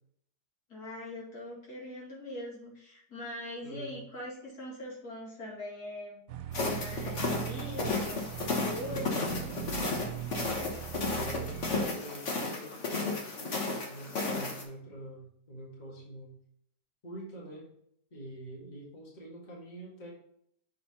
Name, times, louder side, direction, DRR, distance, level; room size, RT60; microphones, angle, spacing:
voice 1, 0.7-6.2 6.7-8.2 8.6-9.6, left 1 dB, 60° left, -4 dB, 2.6 m, -42 dB
voice 2, 3.6-4.0 11.0-11.5 11.8-16.3 17.0-17.7 18.1-20.1, right 1 dB, 25° left, -4 dB, 1.8 m, -45 dB
sound 1, 6.3-11.9, right 11 dB, 65° right, 0.9 m, -40 dB
sound 2, 6.5-14.6, left 3 dB, 45° left, 1.5 m, -33 dB
6.7 x 4.2 x 4.1 m, 0.69 s
omnidirectional pair, 1.9 m